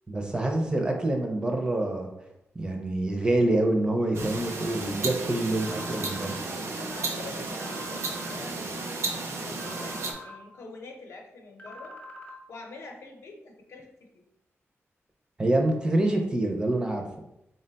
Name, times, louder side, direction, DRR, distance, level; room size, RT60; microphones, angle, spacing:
voice 1, 0.1-2.1 2.6-6.4 15.4-17.1, right 1 dB, 15° right, 2 dB, 0.4 m, -26 dB
sound 1, 4.1-10.1, right 3 dB, 70° right, 0.5 m, -33 dB
sound 2, 5.6-6.4 7.6-8.4 9.6-10.4 11.6-12.4, left 1 dB, 30° left, 0.7 m, -44 dB
voice 2, 6.8-11.9 12.5-13.9 14.1-14.2, left 3 dB, 70° left, 1 dB, 0.7 m, -45 dB
3.9 x 2.2 x 3.9 m, 0.83 s
wide cardioid pair, 175°, 5 cm